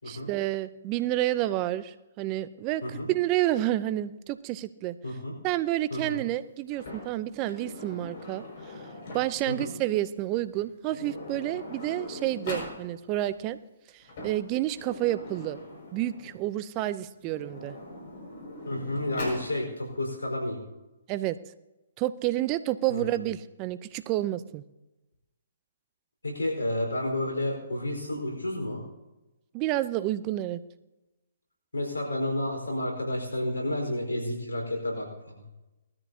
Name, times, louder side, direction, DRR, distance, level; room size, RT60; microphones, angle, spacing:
voice 1, 0.1-2.8 3.1-5.0 5.4-8.4 9.1-13.6 13.9-15.6 15.9-17.8 21.1-21.4 22.0-24.6 29.5-30.6, right 15 dB, 30° right, 14 dB, 0.6 m, -29 dB
voice 2, 5.0-5.4 5.9-6.2 9.5-9.7 18.7-20.6 22.9-23.2 26.2-28.8 31.7-35.1, left 1 dB, 90° left, 2 dB, 4.5 m, -31 dB
Sliding door, 6.7-9.6 10.5-10.6 10.9-12.8 13.9-16.4 17.2-19.5, left 2 dB, 55° left, 5.9 m, -41 dB
19.5 x 13.5 x 2.8 m, 1.0 s
hypercardioid pair, 135°, 0 cm